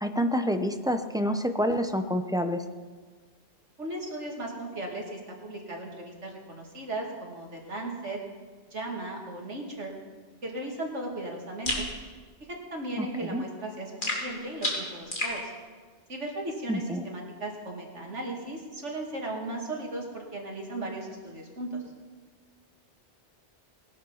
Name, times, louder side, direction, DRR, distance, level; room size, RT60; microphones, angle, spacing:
voice 1, 0.0-2.6 13.0-13.1 13.3-13.4 16.7-17.0, equal, 5° right, 6 dB, 0.6 m, -27 dB
voice 2, 3.8-8.2 8.7-9.9 10.4-11.9 12.5-15.5 16.1-21.8, right 2 dB, 75° right, 0 dB, 2.9 m, -36 dB
sound 1, 11.6-11.9 14.0-15.4, left 1 dB, 45° left, 3.2 m, -30 dB
19.5 x 11.5 x 5.6 m, 1.5 s
omnidirectional pair, 1.2 m